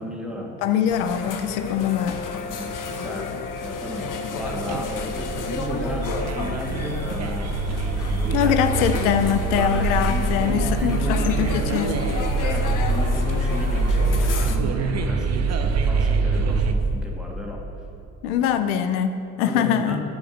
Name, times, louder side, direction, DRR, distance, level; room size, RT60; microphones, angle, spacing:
voice 1, 0.0-0.6 2.5-7.6 7.9-8.6 8.8-8.9 9.2-12.0 12.4-17.6 18.2-18.4 19.4-20.1, equal, ahead, -2 dB, 2.0 m, -34 dB
voice 2, 0.6-2.2 8.3-12.0 18.2-20.0, left 9 dB, 85° left, 10 dB, 0.5 m, -23 dB
sound 1, 0.9-14.6, left 5 dB, 50° left, 0.9 m, -32 dB
Brass instrument, 1.7-6.6, left 2 dB, 20° left, 0.3 m, -36 dB
sound 2, 4.4-16.7, right 3 dB, 40° right, 0.7 m, -24 dB
9.3 x 5.0 x 6.4 m, 2.7 s
hypercardioid pair, 55°, 41 cm